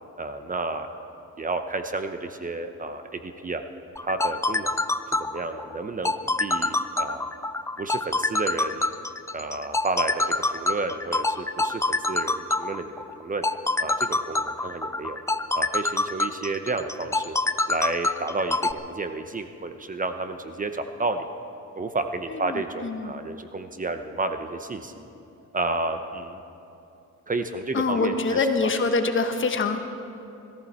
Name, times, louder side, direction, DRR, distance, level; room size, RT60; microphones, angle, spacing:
voice 1, 0.2-0.9 1.4-3.6 4.0-4.8 5.1-7.3 7.8-8.9 9.3-13.5 13.8-15.2 15.5-17.4 17.7-21.3 21.7-25.0 25.5-26.4 27.3-28.7, right 3 dB, 25° right, 8 dB, 0.8 m, -31 dB
sound 1, 4.0-18.7, left 2 dB, 10° left, 0.4 m, -26 dB
voice 2, 22.3-23.2 27.7-29.8, left 3 dB, 40° left, 6 dB, 1.3 m, -25 dB
21.0 x 14.0 x 4.3 m, 2.7 s
cardioid pair, 90°, 30 cm